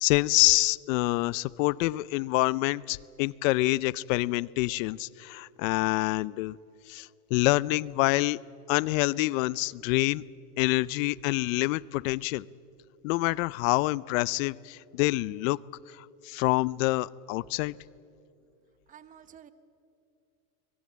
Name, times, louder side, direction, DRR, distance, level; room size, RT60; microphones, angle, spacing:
voice 1, 0.0-6.6 6.9-8.4 8.7-10.2 10.6-12.4 13.0-15.6 16.2-17.7, left 21 dB, 60° left, 22 dB, 0.6 m, -26 dB
voice 2, 18.9-19.5, right 9 dB, 20° right, 13 dB, 0.8 m, -51 dB
24.0 x 20.0 x 8.5 m, 2.7 s
supercardioid pair, 145°, 44 cm